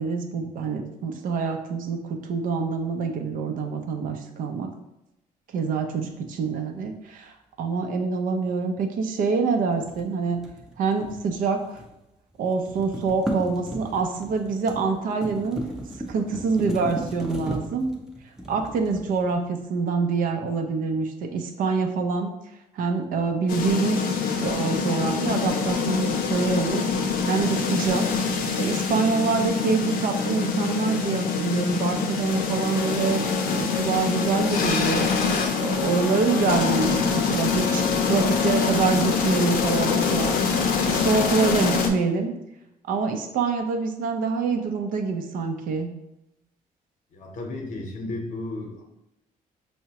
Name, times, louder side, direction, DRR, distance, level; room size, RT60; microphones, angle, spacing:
voice 1, 0.0-4.7 5.5-10.4 10.8-11.8 12.4-15.6 16.1-17.9 18.5-22.3 22.7-24.0 24.4-26.9 27.2-28.2 28.6-37.0 37.2-42.3 42.9-45.9, right 4 dB, 70° right, 5 dB, 0.5 m, -26 dB
sound 1, 9.8-12.0 12.3-19.6, right 1 dB, 5° right, 0.4 m, -36 dB
sound 2, 23.5-41.9, left 5 dB, 85° left, 0.5 m, -25 dB
voice 2, 47.1-48.8, left 2 dB, 55° left, 1 dB, 0.8 m, -33 dB
4.6 x 2.1 x 2.8 m, 0.88 s
cardioid pair, 130°, 15 cm